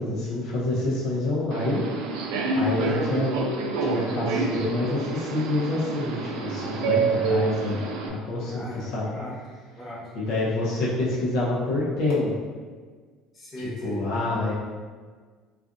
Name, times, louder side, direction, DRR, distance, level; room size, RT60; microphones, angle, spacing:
voice 1, 0.0-1.9 2.5-3.4 3.8-7.8 8.1-9.0 10.1-12.3 13.8-14.5, left 2 dB, 65° left, -7 dB, 0.7 m, -27 dB
Subway metro underground, 1.5-8.1, right 4 dB, 75° right, 0.4 m, -28 dB
voice 2, 2.5-3.1 8.5-9.4 9.8-10.1 13.3-14.0, left 1 dB, 20° left, -8 dB, 1.1 m, -37 dB
2.5 x 2.4 x 3.8 m, 1.5 s
cardioid pair, 155°, 0 cm